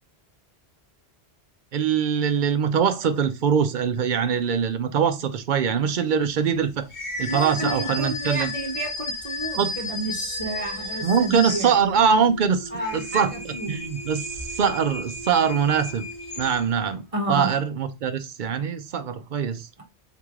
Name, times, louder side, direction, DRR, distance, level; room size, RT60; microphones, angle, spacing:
voice 1, 1.7-6.9 7.2-8.5 9.6-9.7 11.0-16.0 16.4-17.0 17.3-19.7, right 7 dB, 55° right, 0.6 m, -23 dB
sound 1, 6.9-12.2 12.6-16.9, left 2 dB, 80° left, 1.4 m, -34 dB
voice 2, 7.3-11.7 12.7-13.8 17.1-17.5, right 2 dB, 35° right, 0.9 m, -30 dB
sound 2, 10.2-17.5, equal, 25° left, 1.0 m, -43 dB
3.7 x 3.2 x 3.5 m
omnidirectional pair, 1.1 m